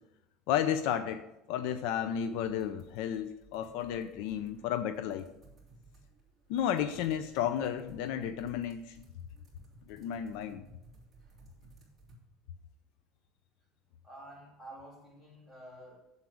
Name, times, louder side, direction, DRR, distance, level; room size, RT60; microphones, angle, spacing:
voice 1, 0.5-5.3 6.5-9.0 9.9-10.6, left 9 dB, 70° left, 11 dB, 0.5 m, -33 dB
sound 1, 2.1-12.1, right 2 dB, 10° right, 3.3 m, -58 dB
voice 2, 14.0-16.0, right 1 dB, 15° left, -2 dB, 2.9 m, -50 dB
7.9 x 7.2 x 6.3 m, 0.93 s
cardioid pair, 150°, 0 cm